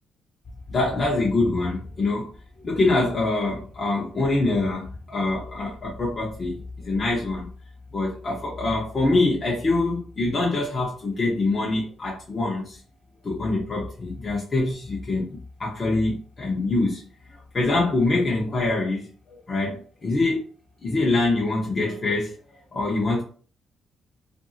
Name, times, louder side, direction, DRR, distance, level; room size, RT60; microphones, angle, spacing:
voice 1, 0.7-2.3 2.6-7.5 7.9-12.8 13.2-17.0 17.5-20.5 20.8-22.3 22.7-23.2, left 2 dB, 35° left, -4 dB, 0.8 m, -24 dB
2.6 x 2.6 x 2.7 m, 0.42 s
cardioid pair, 90°, 0 cm